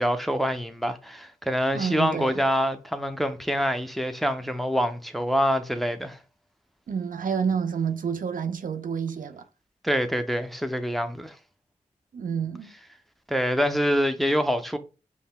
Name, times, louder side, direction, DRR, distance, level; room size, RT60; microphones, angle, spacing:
voice 1, 0.0-6.2 9.8-11.4 13.3-14.8, equal, ahead, 0.5 m, -25 dB
voice 2, 1.7-2.4 6.9-9.4 12.1-12.7, right 6 dB, 70° right, 0.4 m, -29 dB
5.3 x 2.1 x 2.2 m
cardioid pair, 40°, 14 cm